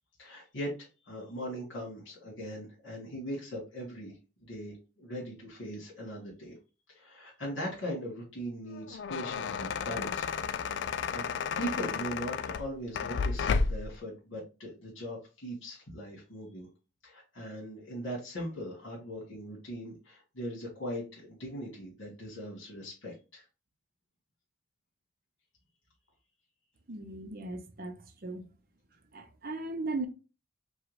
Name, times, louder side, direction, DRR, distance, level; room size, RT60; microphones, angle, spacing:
voice 1, 0.2-6.6 6.9-11.3 11.6-16.7 17.0-23.5, equal, 75° left, 1.7 m, -40 dB
sound 1, 8.7-14.0, left 5 dB, 60° left, 0.3 m, -32 dB
voice 2, 26.9-28.4 29.1-30.1, right 2 dB, 45° right, 0.6 m, -37 dB
4.8 x 2.3 x 3.2 m
head